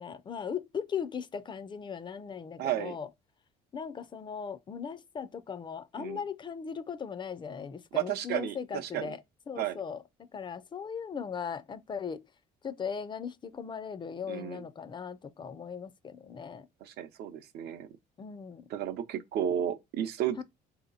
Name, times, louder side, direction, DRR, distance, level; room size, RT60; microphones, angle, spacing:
voice 1, 0.0-3.1 3.7-9.2 9.5-10.0 10.3-12.2 12.6-16.7 18.2-18.7 20.4-20.5, left 6 dB, 30° left, 0.4 m, -38 dB
voice 2, 2.6-3.0 6.0-6.2 7.9-9.1 9.6-9.8 14.3-14.6 16.8-17.9 18.7-20.4, right 11 dB, 70° right, 0.7 m, -33 dB
3.8 x 2.8 x 3.9 m
cardioid pair, 110°, 17 cm